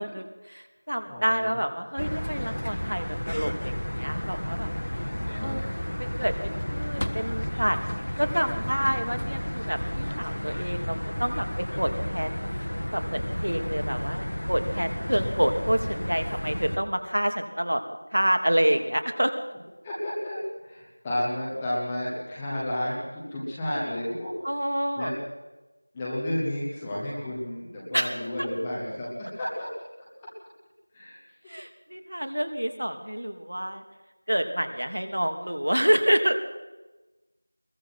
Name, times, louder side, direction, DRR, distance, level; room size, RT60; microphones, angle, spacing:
voice 1, 0.0-4.7 5.4-5.7 6.0-7.8 8.2-11.4 11.8-12.5 12.9-17.8 18.1-19.3 24.4-25.1 27.9-28.1 28.4-28.5 31.5-33.8 34.3-36.4, equal, 65° right, 7 dB, 3.0 m, -28 dB
voice 2, 1.1-1.6 5.2-5.6 8.5-8.6 8.8-9.0 15.0-15.4 19.8-24.3 24.9-25.1 25.9-29.7 30.9-31.2, left 1 dB, 5° left, -8 dB, 0.9 m, -32 dB
sound 1, 2.0-16.8, equal, 50° left, 1.4 m, -32 dB
22.0 x 20.5 x 5.9 m, 1.1 s
figure-of-eight pair, 180°, 0 cm